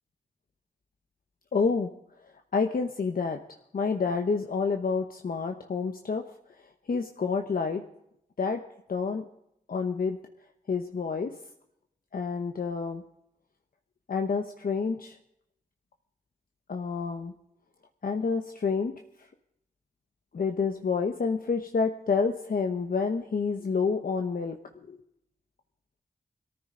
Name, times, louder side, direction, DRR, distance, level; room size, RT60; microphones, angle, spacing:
voice 1, 1.5-1.9 2.5-3.4 3.7-6.3 6.9-7.8 8.4-8.6 8.9-9.3 9.7-10.2 10.7-11.4 12.1-13.0 14.1-15.2 16.7-17.3 18.0-19.0 20.3-24.6 24.9-25.0, left 5 dB, 70° left, 4 dB, 1.0 m, -28 dB
22.0 x 14.0 x 3.8 m, 0.78 s
wide cardioid pair, 90°, 15 cm